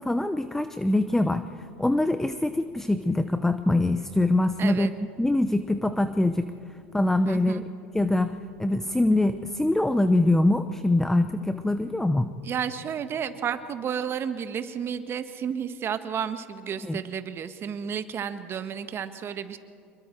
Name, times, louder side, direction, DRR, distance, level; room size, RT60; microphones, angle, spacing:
voice 1, 0.0-4.9 5.2-6.5 6.9-7.6 7.9-12.3 16.8-17.0, left 2 dB, 5° left, 11 dB, 0.8 m, -24 dB
voice 2, 4.6-4.9 7.2-7.6 12.4-19.6, right 8 dB, 40° right, 10 dB, 1.5 m, -32 dB
26.5 x 22.5 x 4.6 m, 2.4 s
hypercardioid pair, 85°, 6 cm